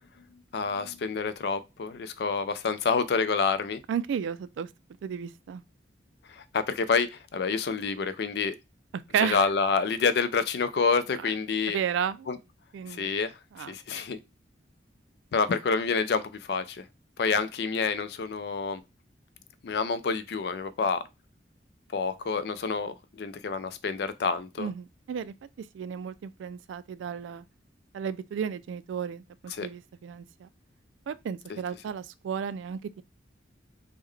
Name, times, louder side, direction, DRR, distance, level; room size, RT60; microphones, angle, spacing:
voice 1, 0.5-3.8 6.3-8.6 9.2-11.8 12.3-12.4 12.9-13.3 13.7-14.2 15.3-16.9 17.2-18.8 19.6-21.0 21.9-24.7 29.5-29.7 31.5-31.6, left 5 dB, 60° left, 0.4 m, -28 dB
voice 2, 3.9-4.7 5.0-5.6 9.1-9.4 11.7-12.3 12.7-13.1 13.6-14.0 24.6-25.3 25.7-27.4 27.9-30.5 31.1-33.0, right 7 dB, 90° right, 0.3 m, -33 dB
3.3 x 2.1 x 3.6 m
head